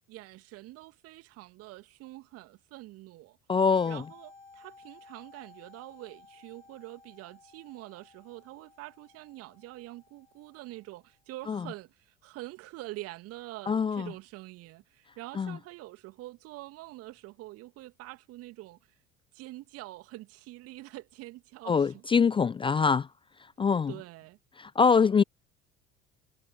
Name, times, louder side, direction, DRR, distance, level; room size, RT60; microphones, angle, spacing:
voice 1, 0.1-3.4 3.8-18.8 19.3-22.0 23.9-24.4, right 18 dB, 50° right, 2.6 m, -45 dB
voice 2, 3.5-4.0 11.5-11.6 13.7-14.1 15.4-15.6 21.7-23.1 23.6-23.9 24.6-25.2, left 5 dB, 15° left, 0.6 m, -24 dB
sound 1, 3.6-11.1, left 4 dB, 90° left, 6.6 m, -57 dB
figure-of-eight pair, 65°, 31 cm